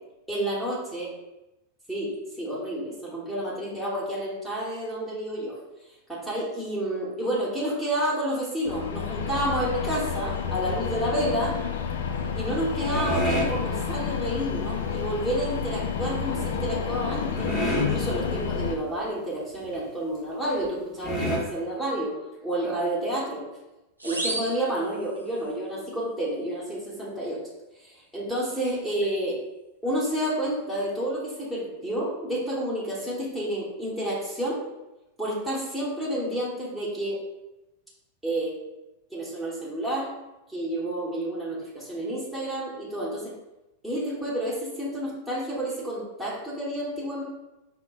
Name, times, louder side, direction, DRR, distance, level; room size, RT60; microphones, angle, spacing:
voice 1, 0.3-1.1 1.9-2.1 2.4-5.6 6.1-11.6 12.4-22.1 22.4-23.4 24.0-27.4 27.8-29.4 29.8-34.6 35.2-37.2 38.2-38.5 39.1-40.1 40.5-43.2 43.8-47.2, right 1 dB, ahead, -7 dB, 0.9 m, -30 dB
sound 1, 8.7-18.8, left 7 dB, 60° left, 0.3 m, -30 dB
sound 2, 12.7-13.5 16.0-16.3 16.9-17.0 17.3-18.2 18.7-18.8 19.0-19.2 19.7-19.8 20.6-20.7 21.0-21.4, left 1 dB, 25° left, 1.1 m, -27 dB
sound 3, 24.0-25.5, right 2 dB, 85° right, 0.4 m, -34 dB
5.1 x 2.0 x 2.4 m, 0.97 s
figure-of-eight pair, 90°, 0 cm